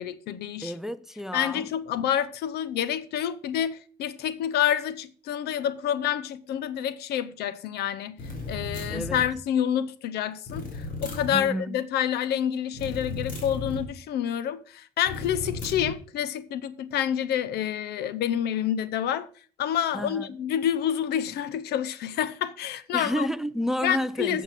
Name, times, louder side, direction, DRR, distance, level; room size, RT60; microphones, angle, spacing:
voice 1, 0.0-0.7 1.3-8.2 8.5-19.3 19.6-23.3 23.8-24.4, left 10 dB, 70° left, 0.7 m, -28 dB
voice 2, 0.6-1.7 8.9-9.2 11.3-11.8 19.9-20.3 22.9-24.4, equal, ahead, 0.5 m, -30 dB
sound 1, 8.2-9.3 10.5-11.4 12.7-13.9 15.1-15.9, left 3 dB, 55° left, 3.3 m, -35 dB
8.1 x 7.3 x 5.8 m
cardioid pair, 110°, 17 cm